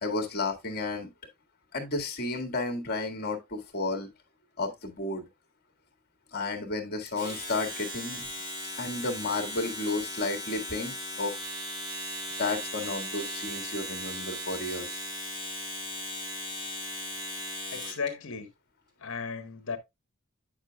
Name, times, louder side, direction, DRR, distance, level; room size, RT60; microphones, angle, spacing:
voice 1, 0.0-1.1 1.7-4.1 4.6-5.3 6.3-8.3 8.7-11.5 12.4-15.0, left 2 dB, 45° left, 1.7 m, -32 dB
Domestic sounds home sounds, 7.1-18.1, equal, 20° right, 2.2 m, -37 dB
voice 2, 17.6-18.5 19.0-19.8, left 5 dB, 60° left, 1.2 m, -35 dB
8.7 x 6.5 x 2.2 m
head